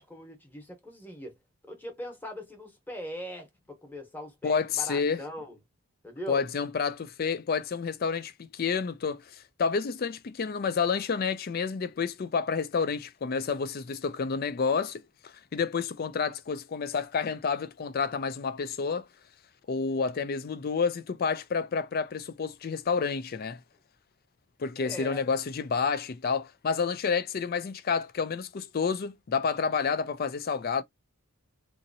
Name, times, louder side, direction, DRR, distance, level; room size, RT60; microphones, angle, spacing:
voice 1, 0.0-1.4 1.6-5.6 6.0-6.4 24.8-25.2, equal, 10° left, 1.0 m, -41 dB
voice 2, 4.4-5.2 6.3-19.1 19.7-23.6 24.6-30.8, left 5 dB, 40° left, 0.4 m, -29 dB
3.8 x 2.8 x 2.7 m
head